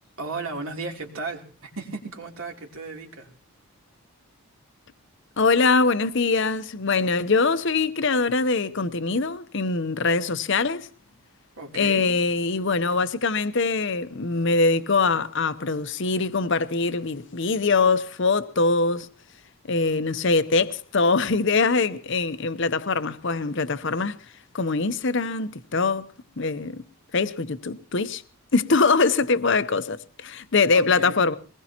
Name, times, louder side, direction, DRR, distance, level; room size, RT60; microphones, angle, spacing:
voice 1, 0.2-3.3 11.6-12.0 30.7-31.2, right 3 dB, 70° right, 3.1 m, -35 dB
voice 2, 5.4-10.9 11.7-19.1 19.7-24.2 24.5-26.8 27.1-28.2 28.5-31.3, left 4 dB, 55° left, 0.8 m, -23 dB
22.0 x 20.0 x 2.9 m
head